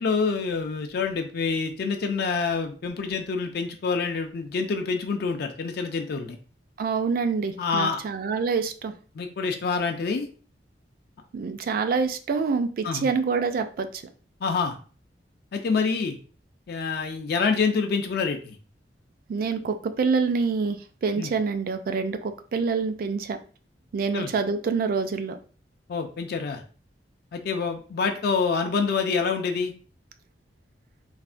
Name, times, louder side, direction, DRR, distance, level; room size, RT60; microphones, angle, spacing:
voice 1, 0.0-6.4 7.6-8.0 9.2-10.2 12.8-13.1 14.4-14.8 15.5-16.2 16.7-18.6 21.2-21.3 24.1-24.3 25.9-26.6 27.3-29.7, left 5 dB, 60° left, 5 dB, 0.4 m, -26 dB
voice 2, 6.8-8.9 11.3-13.9 19.3-23.4 23.9-25.4, right 5 dB, 55° right, 8 dB, 0.3 m, -26 dB
3.3 x 2.1 x 2.4 m, 0.39 s
head